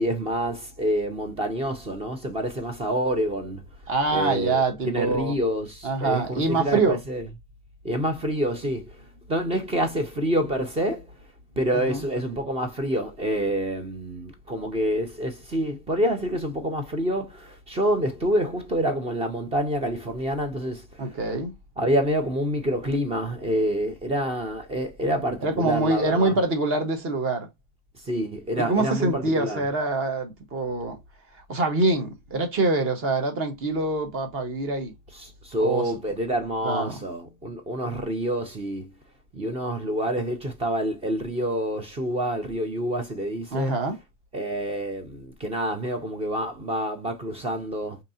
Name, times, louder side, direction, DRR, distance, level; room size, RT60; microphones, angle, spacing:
voice 1, 0.0-3.6 4.1-7.2 7.8-11.1 11.6-21.3 21.8-26.4 28.0-29.7 35.1-38.9 39.3-43.9 44.3-48.0, equal, 15° right, 0.4 m, -27 dB
voice 2, 3.9-5.4 5.8-7.0 11.7-12.0 21.0-21.5 25.4-27.5 28.6-31.0 31.5-34.9 35.6-35.9 36.6-37.0 43.5-44.0, right 3 dB, 30° right, 1.1 m, -25 dB
5.0 x 2.7 x 2.7 m
supercardioid pair, 140°, 41 cm